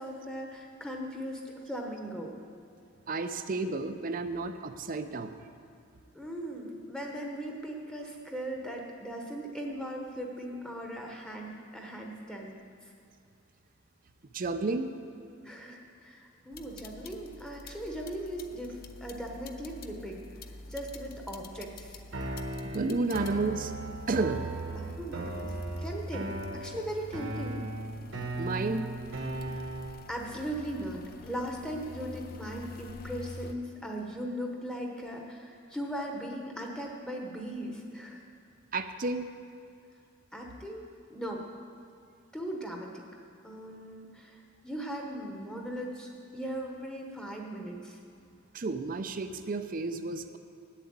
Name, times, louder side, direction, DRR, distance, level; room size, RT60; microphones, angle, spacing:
voice 1, 0.0-2.3 6.1-12.6 15.4-20.2 20.7-22.0 24.7-27.7 29.5-29.7 30.1-38.2 40.3-41.4 42.3-43.0 43.4-48.0, equal, 5° left, 0 dB, 1.0 m, -38 dB
voice 2, 3.1-5.4 14.3-14.9 22.6-23.7 24.1-24.4 28.4-28.9 38.7-39.3 48.5-50.4, right 3 dB, 40° right, 9 dB, 0.5 m, -31 dB
sound 1, 16.5-33.5, left 3 dB, 45° left, 0.5 m, -48 dB
sound 2, 22.1-30.1, right 2 dB, 65° right, 1.2 m, -37 dB
8.1 x 7.4 x 8.7 m, 2.5 s
head